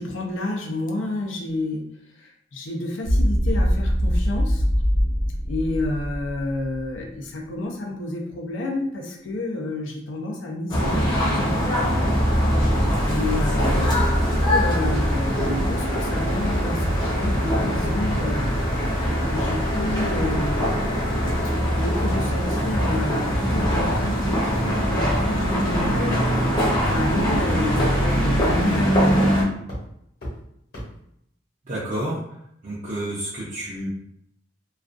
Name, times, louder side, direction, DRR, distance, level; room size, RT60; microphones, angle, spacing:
voice 1, 0.0-1.8 2.2-4.6 5.5-11.9 13.1-18.5 19.3-20.8 21.7-26.3 26.8-29.5, left 2 dB, 85° left, 1 dB, 0.5 m, -30 dB
sound 1, 3.0-7.0, equal, 75° right, 0.7 m, -22 dB
sound 2, 10.7-29.4, equal, 25° left, 0.6 m, -22 dB
sound 3, 21.6-21.8 22.1-22.2 22.7-22.8 23.3-23.4 23.9-24.0 24.5-24.6 25.1-25.3 25.7-25.8 26.3-26.4 26.8-26.9 27.4-27.5 27.9-28.0 28.5-28.6 29.1-29.3 29.7-29.8 30.2-30.3 30.7-30.8, equal, 55° left, 1.0 m, -31 dB
voice 2, 31.7-32.2 32.6-33.9, right 1 dB, 45° right, -9 dB, 0.5 m, -29 dB
2.4 x 2.3 x 2.4 m, 0.76 s
head